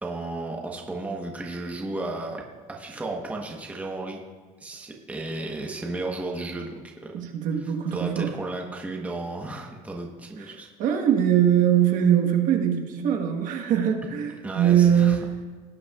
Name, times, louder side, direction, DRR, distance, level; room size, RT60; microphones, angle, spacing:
voice 1, 0.0-2.4 2.7-4.2 4.6-7.2 7.9-10.7 14.4-15.2, right 2 dB, 10° right, 0 dB, 1.1 m, -34 dB
voice 2, 7.1-8.3 10.4-15.4, right 9 dB, 50° right, 4 dB, 1.3 m, -22 dB
18.0 x 8.2 x 2.4 m, 1.5 s
cardioid pair, 140°, 17 cm